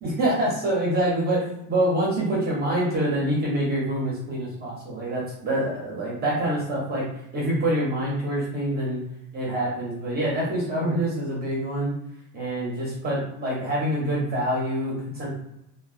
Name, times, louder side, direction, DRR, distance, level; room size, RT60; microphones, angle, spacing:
voice 1, 0.0-7.0 7.3-9.0 9.3-11.9 12.3-15.3, right 1 dB, 20° right, -4 dB, 0.5 m, -26 dB
3.5 x 2.1 x 2.3 m, 0.83 s
supercardioid pair, 145°, 49 cm